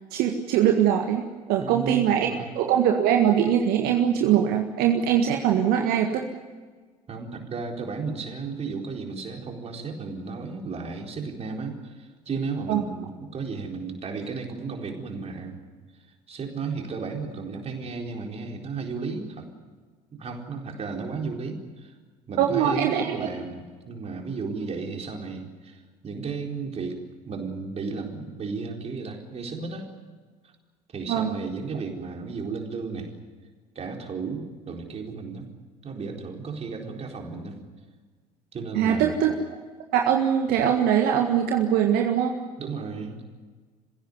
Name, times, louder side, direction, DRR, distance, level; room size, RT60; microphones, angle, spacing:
voice 1, 0.1-6.2 12.7-12.8 22.4-23.2 31.1-31.3 38.7-39.3 39.9-42.3, right 9 dB, 50° right, 3 dB, 1.7 m, -22 dB
voice 2, 1.6-2.5 7.1-15.6 16.3-19.5 20.1-21.9 22.3-29.9 30.9-33.1 33.7-35.5 35.8-37.6 38.5-39.2 42.6-43.3, right 4 dB, 30° right, 2 dB, 4.2 m, -34 dB
27.5 x 16.0 x 9.6 m, 1.5 s
figure-of-eight pair, 60°, 20 cm